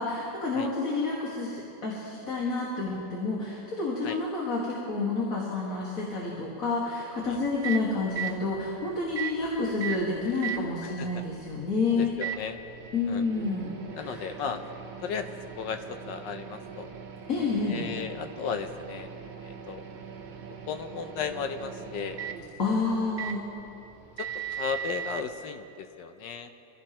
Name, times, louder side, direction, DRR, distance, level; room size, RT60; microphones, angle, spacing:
voice 1, 0.0-12.1 12.9-14.3 17.3-17.8 22.6-23.4, left 3 dB, 45° left, -4 dB, 2.1 m, -29 dB
Microwave oven, 7.2-25.2, right 8 dB, 45° right, 0.6 m, -40 dB
voice 2, 12.0-12.5 13.1-13.2 13.9-14.6 15.0-15.3 15.6-16.9 17.7-19.1 19.4-19.8 20.7-22.2 23.2-23.4 24.2-26.5, left 6 dB, 75° left, 7 dB, 1.3 m, -35 dB
24.0 x 16.0 x 3.0 m, 2.8 s
omnidirectional pair, 2.0 m